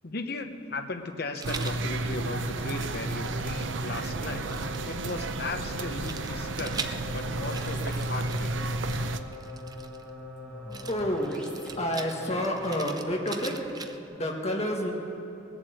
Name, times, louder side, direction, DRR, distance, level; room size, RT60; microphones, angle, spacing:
voice 1, 0.0-8.7, left 3 dB, 55° left, 6 dB, 0.9 m, -37 dB
Rattle, 1.3-1.8 2.5-5.1 6.0-10.1 10.7-14.2, right 5 dB, 20° right, 0.5 m, -42 dB
sound 1, 1.4-9.2, right 2 dB, 85° right, 0.7 m, -32 dB
sound 2, 3.8-12.6, left 2 dB, 5° left, 1.9 m, -43 dB
voice 2, 10.9-11.4 11.8-13.7 14.1-14.9, equal, 35° left, 0 dB, 1.8 m, -29 dB
20.0 x 7.5 x 8.1 m, 2.9 s
head